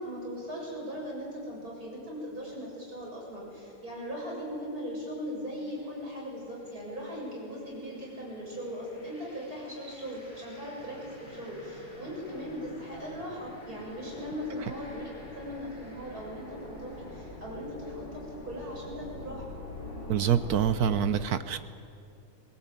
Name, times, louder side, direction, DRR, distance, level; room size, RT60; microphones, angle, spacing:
voice 1, 0.0-15.1 15.3-19.5, equal, 40° right, -3 dB, 7.8 m, -39 dB
sound 1, 5.7-6.0 6.6-21.0, left 1 dB, 25° left, 5.0 m, -45 dB
voice 2, 20.1-21.6, right 8 dB, 60° right, 12 dB, 1.0 m, -26 dB
22.5 x 19.0 x 9.0 m, 2.5 s
omnidirectional pair, 2.4 m